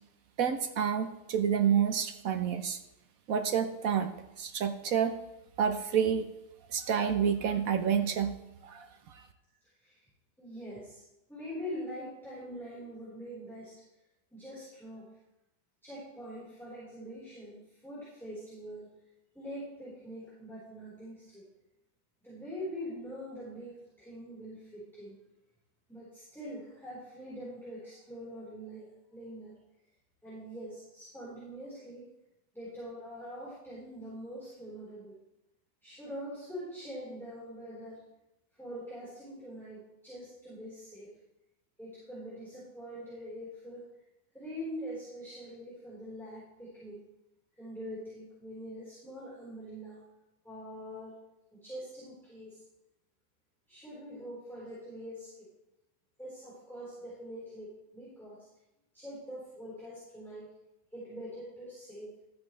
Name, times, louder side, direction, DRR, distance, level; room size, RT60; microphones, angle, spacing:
voice 1, 0.4-2.8 3.3-4.1 4.4-5.2 5.6-6.3 6.7-8.4 8.6-8.9, right 8 dB, 65° right, 7 dB, 1.1 m, -28 dB
voice 2, 10.4-11.0 11.3-13.7 14.3-15.1 15.8-18.9 19.3-21.5 22.2-25.1 25.9-29.5 30.2-32.1 32.5-35.2 35.8-38.0 38.6-41.1 41.8-43.9 44.3-47.0 47.6-50.0 50.4-51.1 51.5-52.6 53.7-55.5 56.2-58.5 58.9-60.5 60.9-62.1, equal, ahead, -9 dB, 4.2 m, -44 dB
14.0 x 8.6 x 3.3 m, 0.90 s
omnidirectional pair, 1.8 m